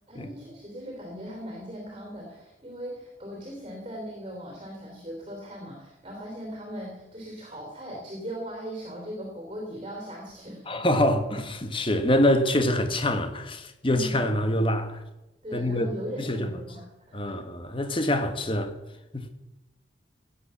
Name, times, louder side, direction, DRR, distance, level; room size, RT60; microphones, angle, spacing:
voice 1, 0.1-10.7 13.9-14.2 15.4-17.3, equal, 25° right, 3.2 m, -39 dB
voice 2, 10.7-15.0 15.5-15.9 16.2-16.5 17.1-18.7 19.1-19.3, left 1 dB, 25° left, 1.3 m, -25 dB
16.0 x 8.6 x 6.9 m
head